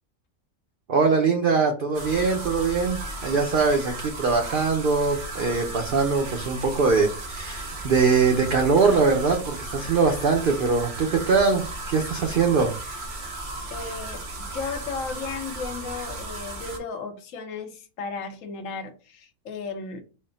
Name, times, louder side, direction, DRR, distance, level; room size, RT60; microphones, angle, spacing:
voice 1, 0.9-12.7, right 4 dB, 70° right, 3 dB, 0.5 m, -22 dB
sound 1, 1.9-16.8, right 2 dB, 40° right, 0.8 m, -35 dB
voice 2, 13.2-20.0, left 5 dB, 65° left, 6 dB, 1.1 m, -35 dB
4.1 x 2.0 x 3.8 m, 0.35 s
omnidirectional pair, 1.6 m